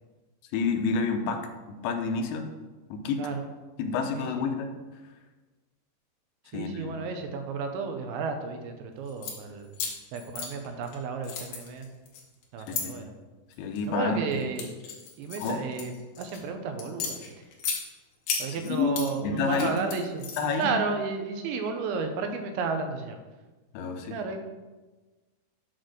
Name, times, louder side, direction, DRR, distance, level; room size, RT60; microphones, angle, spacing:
voice 1, 0.5-2.5 2.9-3.3 3.8-4.7 6.5-7.0 12.7-13.1 13.6-14.2 15.4-15.6 18.6-19.7 20.4-20.7 23.7-24.2, left 4 dB, 85° left, 5 dB, 3.0 m, -29 dB
voice 2, 3.2-3.5 4.2-4.5 6.5-9.8 10.1-11.9 12.5-13.1 13.9-14.7 15.2-17.3 18.4-20.3 20.6-23.2 24.1-24.4, right 4 dB, 85° right, 6 dB, 3.1 m, -32 dB
sound 1, 9.1-9.4 9.7-11.0 11.2-12.8 13.5-13.9 14.3-16.4 16.8-17.8 18.3-19.1 19.4-20.6, left 6 dB, 65° left, 2.7 m, -34 dB
8.1 x 4.2 x 6.3 m, 1.2 s
omnidirectional pair, 5.1 m